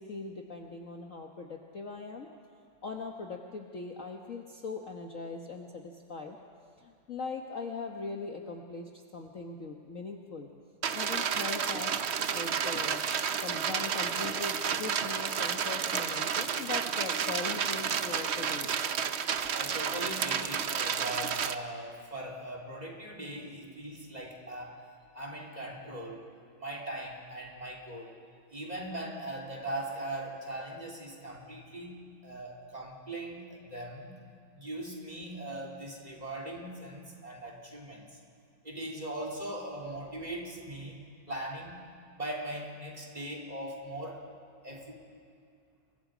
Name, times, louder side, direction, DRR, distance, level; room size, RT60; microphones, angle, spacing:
voice 1, 0.0-2.3 2.8-6.4 6.8-10.5 10.9-11.9 12.3-13.0 13.4-18.7, left 4 dB, 45° left, 2 dB, 1.4 m, -40 dB
sound 1, 10.8-21.5, right 7 dB, 65° right, 0.6 m, -31 dB
voice 2, 19.5-24.8 25.1-26.2 26.6-28.2 28.5-34.1 34.6-38.1 38.6-41.0 41.3-41.8 42.2-44.2 44.6-45.0, right 1 dB, 20° right, 0 dB, 3.4 m, -40 dB
29.0 x 24.0 x 5.1 m, 2.3 s
omnidirectional pair, 2.2 m